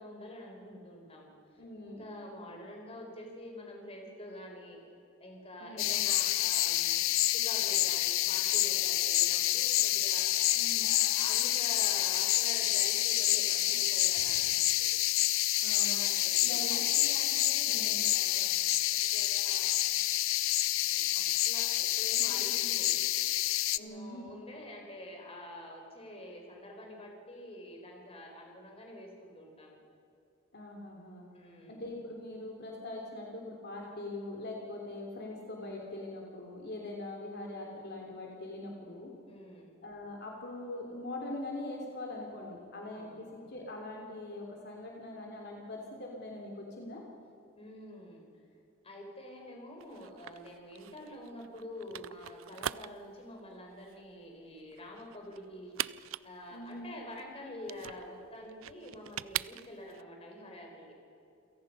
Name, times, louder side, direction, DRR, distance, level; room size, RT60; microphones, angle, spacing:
voice 1, 0.0-4.8 5.2-15.0 15.7-18.7 19.1-20.0 20.8-23.1 23.7-29.8 31.3-31.8 39.3-39.7 42.9-43.3 47.6-48.3 48.8-55.8 56.2-61.0, left 1 dB, 30° left, 1 dB, 4.2 m, -47 dB
voice 2, 1.6-2.4 5.6-6.0 10.5-11.0 15.6-16.0 16.4-16.9 17.7-18.1 23.7-24.3 30.5-31.2 31.7-39.1 39.8-47.0 56.5-56.9, left 2 dB, 55° left, 0 dB, 3.2 m, -42 dB
sound 1, 5.8-23.8, left 15 dB, 85° left, 0.6 m, -28 dB
staple-remover, 49.8-60.0, right 12 dB, 85° right, 0.4 m, -42 dB
29.0 x 17.5 x 5.6 m, 2.7 s
head